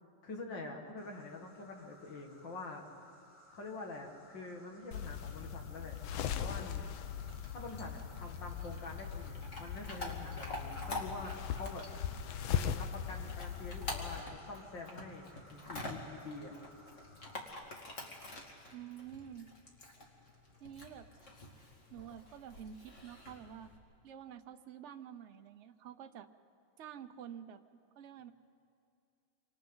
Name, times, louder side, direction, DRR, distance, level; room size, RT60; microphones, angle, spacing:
voice 1, 0.2-2.9 3.5-6.0 6.4-6.9 7.1-7.2 7.5-11.9 12.5-16.5, left 3 dB, 65° left, 1 dB, 2.7 m, -46 dB
Insect, 1.0-17.5, equal, 15° left, 2.4 m, -62 dB
sound 1, 4.9-14.2, left 9 dB, 80° left, 1.5 m, -40 dB
Chewing mastication / Dog, 7.3-23.8, left 1 dB, 35° left, 2.4 m, -48 dB
voice 2, 18.7-19.5 20.6-21.1 21.9-23.7 24.0-26.3 26.8-27.6 27.9-28.3, right 9 dB, 60° right, 8 dB, 0.7 m, -49 dB
27.5 x 25.5 x 4.0 m, 2.4 s
omnidirectional pair, 2.2 m